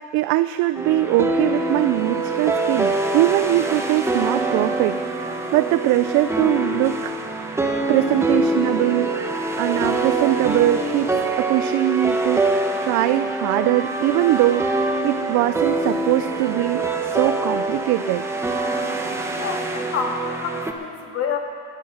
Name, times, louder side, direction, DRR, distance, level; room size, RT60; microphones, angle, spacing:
voice 1, 0.0-7.1 7.9-12.4 12.8-18.3, right 16 dB, 75° right, 12 dB, 0.5 m, -22 dB
sound 1, 0.7-20.7, right 2 dB, 10° right, 0.9 m, -24 dB
voice 2, 19.3-21.4, left 6 dB, 55° left, 2 dB, 1.9 m, -28 dB
18.0 x 9.8 x 5.6 m, 2.1 s
cardioid pair, 150°, 29 cm